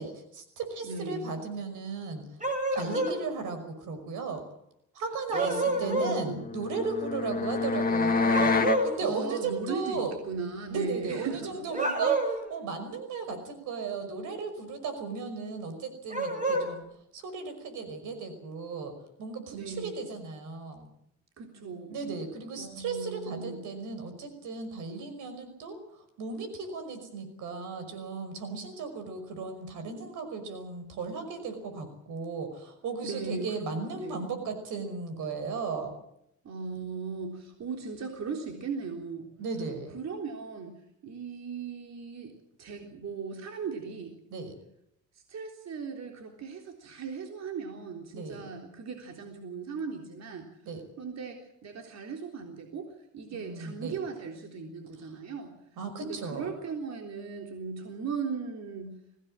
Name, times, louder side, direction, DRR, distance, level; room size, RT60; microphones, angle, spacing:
voice 1, 0.0-2.2 2.8-4.4 4.9-10.1 10.7-16.9 17.1-18.9 19.2-20.9 21.9-36.0 39.4-40.0 44.3-44.5 48.1-48.4 50.6-50.8 53.3-54.0 55.8-56.5, right 4 dB, 85° right, 9 dB, 5.6 m, -36 dB
voice 2, 0.8-1.3 5.3-6.5 8.7-11.6 19.5-20.1 21.4-22.0 22.6-23.7 33.0-34.3 36.4-39.3 39.9-40.8 41.0-42.3 42.6-44.2 45.1-50.5 51.0-55.5 56.0-59.0, right 5 dB, 60° right, 3 dB, 3.7 m, -38 dB
sound 1, 2.4-3.2 5.3-6.2 8.3-9.0 11.7-12.5 16.1-16.7, right 2 dB, 25° right, 7.2 m, -28 dB
sound 2, 6.2-8.8, left 4 dB, 30° left, 1.9 m, -27 dB
23.0 x 17.5 x 7.6 m, 0.74 s
cardioid pair, 90°, 30 cm